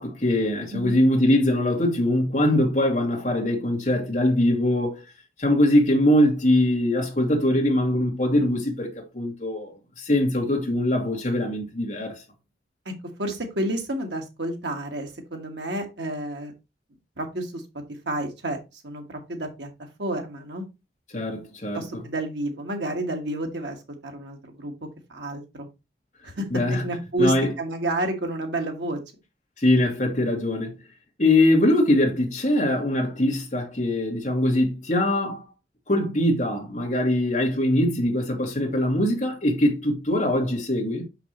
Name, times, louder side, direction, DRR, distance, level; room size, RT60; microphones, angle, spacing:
voice 1, 0.0-5.0 5.4-12.2 21.1-21.8 26.5-26.8 27.2-27.5 29.6-30.7 31.2-35.4 35.9-41.0, left 1 dB, 40° left, 2.1 m, -22 dB
voice 2, 0.7-1.0 12.8-12.9 13.2-16.5 17.2-17.6 18.0-19.7 20.0-20.6 21.7-25.7 26.2-29.0, right 1 dB, 80° right, 1.6 m, -30 dB
6.1 x 5.8 x 3.0 m
head